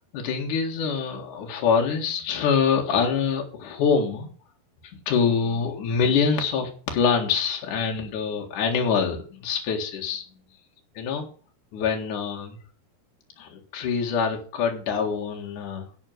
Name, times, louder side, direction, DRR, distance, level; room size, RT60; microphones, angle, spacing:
voice 1, 0.1-4.3 4.9-10.2 10.9-11.2 11.7-12.6 13.4-16.0, left 6 dB, 60° left, 1 dB, 3.1 m, -25 dB
11.0 x 6.3 x 7.8 m, 0.40 s
omnidirectional pair, 4.3 m